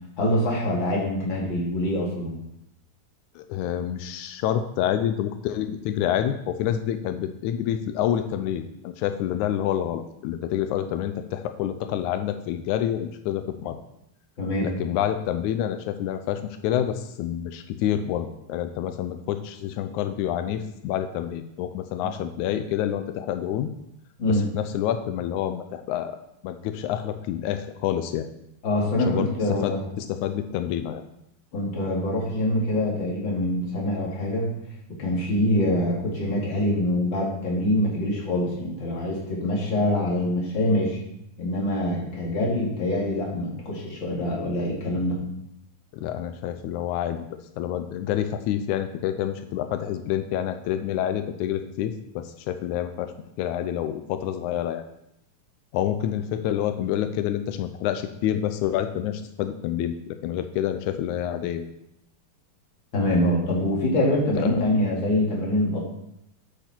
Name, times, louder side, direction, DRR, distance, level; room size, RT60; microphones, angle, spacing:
voice 1, 0.2-2.3 14.4-14.7 22.0-22.1 24.2-24.4 28.6-29.8 31.5-34.6 35.0-41.0 41.4-45.2 62.9-65.9, left 1 dB, 35° left, -3 dB, 3.2 m, -25 dB
voice 2, 3.4-13.8 14.6-23.7 24.3-26.2 26.4-28.3 29.0-31.0 45.9-47.3 47.6-53.1 53.4-54.8 55.7-61.7 64.4-64.6, left 10 dB, 90° left, 9 dB, 1.7 m, -28 dB
10.0 x 8.9 x 4.5 m, 0.80 s
omnidirectional pair, 4.2 m